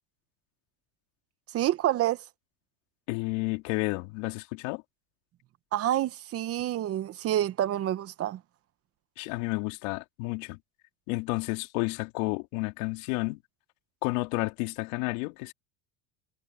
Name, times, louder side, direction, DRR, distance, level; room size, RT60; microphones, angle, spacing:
voice 1, 1.5-2.2 5.7-8.4, right 12 dB, 35° right, 0.9 m, -28 dB
voice 2, 3.1-4.8 9.2-10.6 11.1-13.4 14.0-15.5, left 24 dB, 70° left, 3.2 m, -31 dB
supercardioid pair, 130°, 41 cm